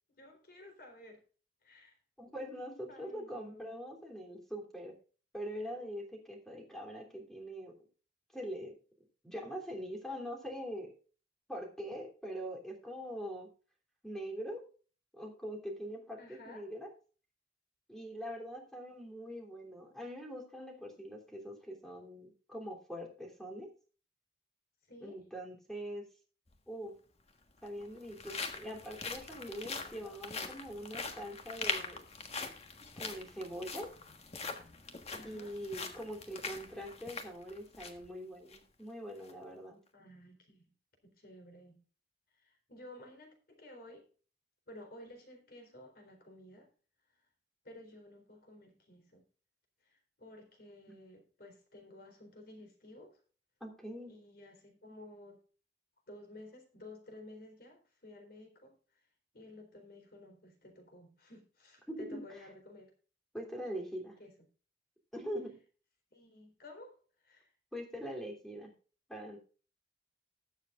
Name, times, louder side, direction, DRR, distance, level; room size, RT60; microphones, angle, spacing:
voice 1, 0.1-1.2 1.6-2.0 2.9-3.7 16.2-16.6 24.9-25.2 35.1-35.6 39.9-40.7 41.0-41.8 42.4-44.0 44.7-46.7 47.6-49.2 49.8-53.2 54.1-55.4 56.1-59.0 59.3-62.9 64.2-64.3 66.1-67.0 67.2-67.5, left 1 dB, 60° left, 4 dB, 4.0 m, -54 dB
voice 2, 2.2-4.9 5.3-7.7 8.3-8.7 9.2-10.9 11.5-13.5 14.0-14.6 15.1-16.9 17.9-23.7 25.0-26.1 26.7-26.9 27.6-32.0 33.0-33.9 35.2-39.8 53.6-54.1 61.9-62.2 63.3-64.2 65.1-65.6 67.7-68.7 69.1-69.4, equal, 5° left, 1 dB, 3.2 m, -43 dB
sound 1, 26.5-26.6 27.5-38.1 38.5-38.6 39.1-39.3, left 4 dB, 35° left, 1.5 m, -42 dB
20.5 x 7.4 x 2.5 m, 0.38 s
head